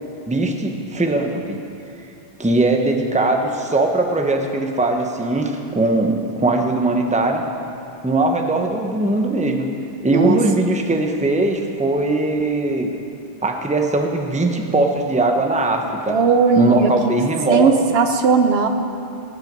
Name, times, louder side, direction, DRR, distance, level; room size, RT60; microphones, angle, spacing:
voice 1, 0.3-1.6 2.4-7.5 8.0-9.7 10.0-12.9 13.4-16.2 16.6-17.7, right 2 dB, 10° right, 3 dB, 0.8 m, -20 dB
voice 2, 16.1-17.2 17.5-18.7, right 5 dB, 75° right, 7 dB, 1.1 m, -17 dB
18.5 x 9.0 x 5.4 m, 2.6 s
omnidirectional pair, 1.0 m